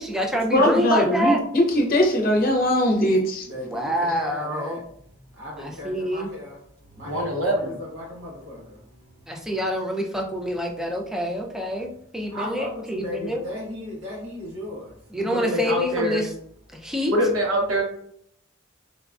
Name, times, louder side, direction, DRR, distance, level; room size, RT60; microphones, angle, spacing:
voice 1, 0.0-1.4 3.5-4.8 5.6-6.3 9.3-13.4 15.1-16.3 16.7-17.1, equal, 5° right, 1 dB, 0.4 m, -27 dB
voice 2, 0.5-3.5, left 1 dB, 45° left, 1 dB, 0.7 m, -20 dB
voice 3, 3.4-4.8 5.3-9.3 12.3-15.0, left 1 dB, 70° right, -4 dB, 1.2 m, -37 dB
voice 4, 7.0-7.8 15.2-16.2 17.1-17.8, equal, 90° right, 1 dB, 0.9 m, -24 dB
3.8 x 2.3 x 2.4 m, 0.67 s
head